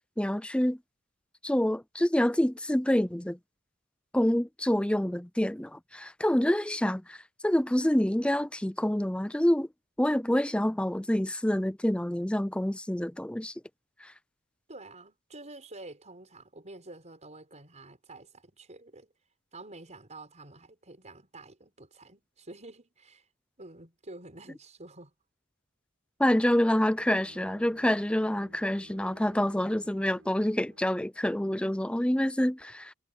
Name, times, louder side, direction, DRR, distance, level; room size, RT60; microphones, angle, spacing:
voice 1, 0.2-0.8 1.4-3.4 4.1-7.2 7.4-9.7 10.0-13.5 14.0-14.1 26.2-32.9, left 1 dB, 5° left, 0.6 m, -27 dB
voice 2, 14.7-19.1 19.5-23.2 23.6-25.1, right 2 dB, 35° right, 6.0 m, -48 dB
Bowed string instrument, 26.8-31.0, right 1 dB, 70° right, 7.4 m, -56 dB
head